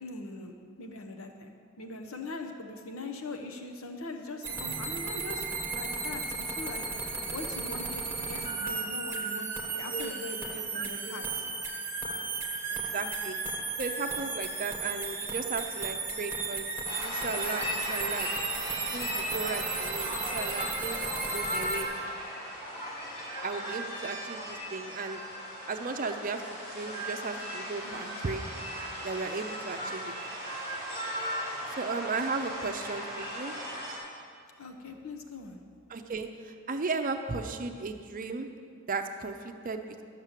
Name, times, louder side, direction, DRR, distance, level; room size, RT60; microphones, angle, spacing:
voice 1, 0.0-5.5 5.8-11.5 27.8-28.1 34.6-35.6, left 2 dB, 75° left, 5 dB, 0.9 m, -42 dB
sound 1, 4.4-21.8, right 4 dB, 10° right, 1.1 m, -35 dB
voice 2, 10.5-11.2 12.7-13.4 13.8-16.7 17.0-18.3 18.9-21.9 23.4-25.2 25.7-28.4 29.0-30.1 31.7-33.5 35.9-38.5 38.9-39.9, right 4 dB, 40° right, 7 dB, 0.6 m, -35 dB
sound 2, 16.8-34.0, equal, 30° left, 3.0 m, -37 dB
12.0 x 6.6 x 7.4 m, 2.2 s
head